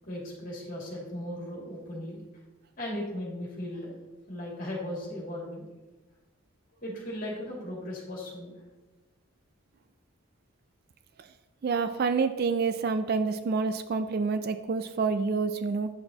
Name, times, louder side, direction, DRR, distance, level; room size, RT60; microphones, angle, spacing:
voice 1, 0.0-2.2 2.8-4.0 4.3-5.6 6.8-8.6, left 1 dB, 40° left, -3 dB, 2.4 m, -37 dB
voice 2, 11.6-15.9, right 4 dB, 45° right, 10 dB, 0.3 m, -28 dB
8.7 x 6.7 x 2.8 m, 1.2 s
head